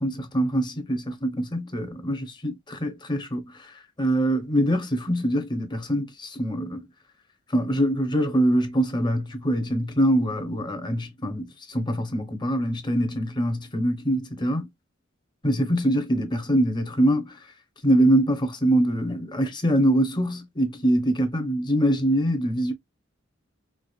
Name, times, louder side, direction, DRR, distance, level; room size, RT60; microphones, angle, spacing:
voice 1, 0.0-6.9 7.5-14.7 15.4-17.4 17.8-22.7, right 1 dB, 25° left, 0.9 m, -24 dB
4.8 x 2.4 x 2.3 m
head